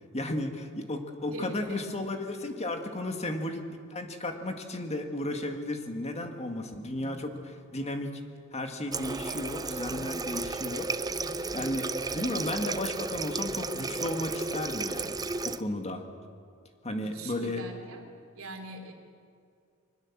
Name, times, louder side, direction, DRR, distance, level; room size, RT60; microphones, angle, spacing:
voice 1, 0.0-8.2 8.5-11.3 11.5-16.0 16.8-17.6, left 1 dB, 30° left, 5 dB, 1.9 m, -34 dB
voice 2, 1.3-1.8 3.1-3.3 6.3-7.7 9.9-10.3 11.1-11.7 17.1-18.1 18.3-18.9, right 1 dB, 75° right, 3 dB, 3.4 m, -45 dB
Water tap faucet, 8.9-15.6, right 3 dB, 20° right, 0.6 m, -33 dB
23.5 x 20.5 x 7.3 m, 2.3 s
head